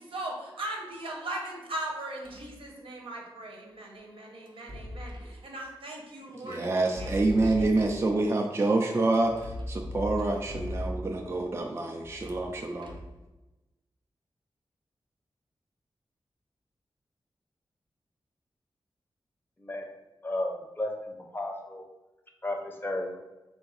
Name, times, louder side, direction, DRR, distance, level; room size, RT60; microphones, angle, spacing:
voice 1, 0.0-7.1 7.6-7.8, right 1 dB, 90° right, -1 dB, 0.9 m, -39 dB
sound 1, 2.2-2.6 4.5-5.4 6.8-8.1 9.1-11.3 12.0-13.2, left 1 dB, 65° right, 0.6 m, -38 dB
voice 2, 6.3-13.0, right 2 dB, 30° right, 2 dB, 0.3 m, -27 dB
voice 3, 20.2-21.8 22.4-23.2, left 1 dB, 25° left, 1 dB, 0.5 m, -33 dB
3.8 x 2.5 x 3.9 m, 1.1 s
wide cardioid pair, 115°, 9 cm